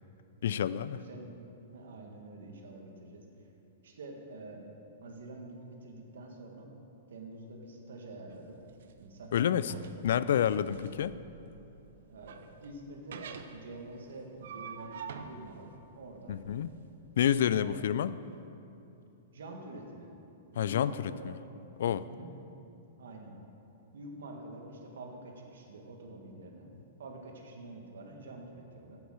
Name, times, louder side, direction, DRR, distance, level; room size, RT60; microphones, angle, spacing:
voice 1, 0.4-1.0 9.3-9.7 10.0-11.1 16.3-16.7 17.2-18.1 20.6-21.4 21.8-22.1, left 9 dB, 65° left, 16 dB, 0.3 m, -28 dB
voice 2, 1.7-3.2 3.8-4.7 5.0-6.7 7.1-8.6 9.0-10.0 12.1-15.0 15.3-16.4 17.6-17.9 19.3-20.1 20.5-21.4 22.1-22.3 23.0-23.4 23.9-26.7 27.0-29.0, right 2 dB, 85° right, 2 dB, 1.8 m, -47 dB
sound 1, 8.3-17.9, right 6 dB, 70° right, 0.7 m, -48 dB
8.3 x 8.1 x 6.5 m, 2.8 s
hypercardioid pair, 165°, 0 cm